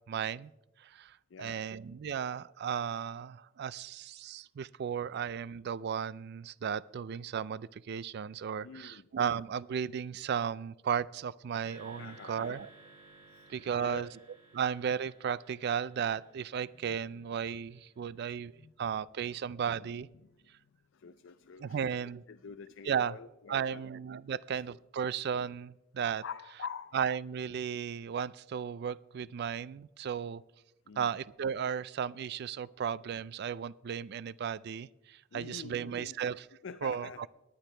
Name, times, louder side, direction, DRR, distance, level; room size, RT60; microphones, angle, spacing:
voice 1, 0.1-0.5 0.8-12.7 13.5-14.1 14.5-20.1 21.6-22.2 22.8-23.1 23.5-26.2 26.9-30.4 31.0-36.5 36.8-37.3, right 7 dB, 55° right, 20 dB, 0.3 m, -35 dB
voice 2, 1.3-1.6 8.6-9.1 12.0-12.6 13.3-13.5 13.7-14.1 16.7-16.9 18.6-18.7 19.4-19.5 19.8-20.3 20.9-22.0 22.3-23.8 24.3-24.7 26.2-27.0 30.9-31.1 35.3-36.1 36.6-37.3, left 6 dB, 65° left, 10 dB, 0.4 m, -46 dB
sound 1, 11.6-18.0, right 2 dB, 30° right, 3.0 m, -58 dB
19.0 x 10.0 x 3.3 m, 0.94 s
head